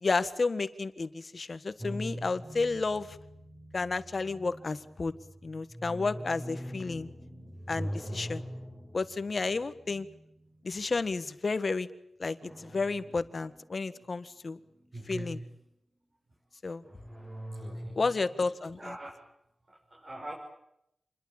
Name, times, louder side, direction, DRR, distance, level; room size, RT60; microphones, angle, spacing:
voice 1, 0.0-3.2 3.7-5.1 5.4-7.1 7.7-8.4 8.9-10.1 10.6-11.9 12.2-14.6 15.1-15.4 16.6-16.8 18.0-18.9, left 3 dB, 45° left, 13 dB, 1.6 m, -31 dB
sound 1, 1.8-11.1 12.4-14.0 14.4-15.5 16.8-18.5, equal, 20° right, 5.3 m, -43 dB
voice 2, 14.9-15.5 17.5-18.0 18.8-19.1 19.7-20.3, right 1 dB, 35° right, -1 dB, 5.9 m, -42 dB
28.0 x 22.0 x 8.8 m, 0.79 s
wide cardioid pair, 135°, 0 cm